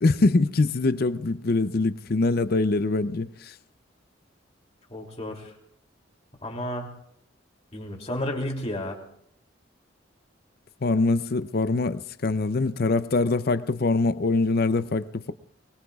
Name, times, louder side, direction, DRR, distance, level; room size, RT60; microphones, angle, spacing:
voice 1, 0.0-3.5 10.8-15.3, left 3 dB, 50° left, 0.5 m, -23 dB
voice 2, 4.9-5.5 6.4-6.9 7.7-9.0, left 1 dB, 35° left, 2.8 m, -32 dB
24.0 x 21.5 x 2.4 m
head